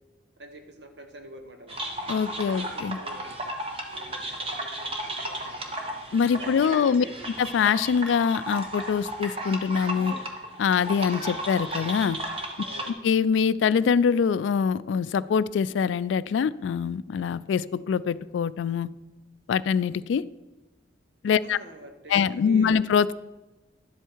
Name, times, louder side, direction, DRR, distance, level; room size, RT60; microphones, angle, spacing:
voice 1, 0.4-1.9 2.3-3.3 3.9-5.8 6.3-7.2 12.7-13.0 21.4-22.9, right 1 dB, 65° right, 5 dB, 1.2 m, -45 dB
sound 1, 1.7-12.9, right 1 dB, 30° right, 1.2 m, -34 dB
voice 2, 2.1-3.0 6.1-7.0 7.4-10.1 10.6-12.2 13.0-18.9 19.5-20.2 21.2-21.6 22.1-23.1, left 6 dB, 80° left, 17 dB, 0.3 m, -24 dB
11.0 x 8.0 x 4.6 m, 1.1 s
head